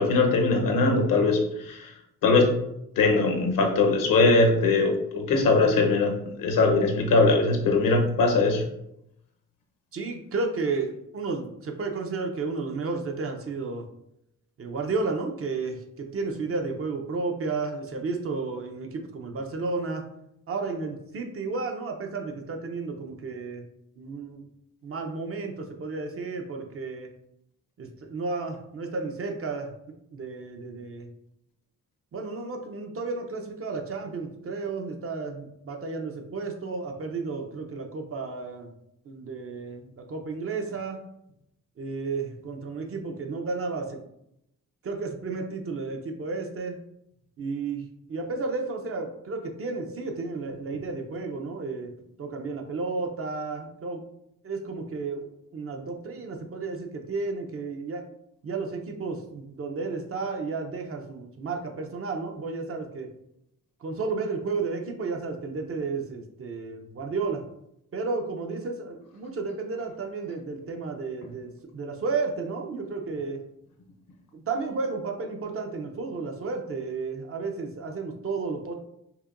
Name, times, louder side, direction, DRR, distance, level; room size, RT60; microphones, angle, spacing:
voice 1, 0.0-1.9 2.2-2.6 3.0-8.6, left 3 dB, 80° left, 3 dB, 0.8 m, -21 dB
voice 2, 9.9-13.8 14.6-20.0 20.5-23.7 24.0-24.4 24.8-27.1 27.8-29.7 30.1-31.1 32.1-38.7 39.1-41.0 41.8-44.0 44.8-46.7 47.4-47.8 48.1-51.9 52.2-54.0 54.4-58.0 58.4-63.1 63.8-67.4 67.9-73.4 74.3-78.7, right 4 dB, 45° right, 3 dB, 0.6 m, -32 dB
5.6 x 2.2 x 2.5 m, 0.79 s
cardioid pair, 100°, 33 cm